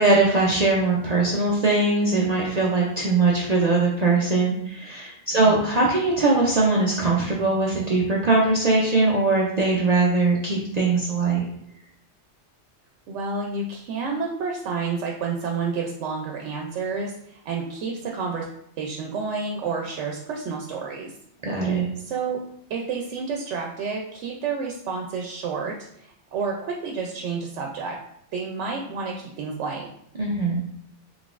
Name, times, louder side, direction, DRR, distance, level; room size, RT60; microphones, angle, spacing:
voice 1, 0.0-11.4 21.4-21.8 30.2-30.6, right 3 dB, 50° right, -3 dB, 0.5 m, -21 dB
voice 2, 5.3-5.6 13.1-18.5 18.8-21.1 22.0-22.4 22.7-28.0 28.3-29.9, right 5 dB, 90° right, 0 dB, 0.9 m, -30 dB
4.0 x 3.4 x 2.4 m, 0.72 s
omnidirectional pair, 1.2 m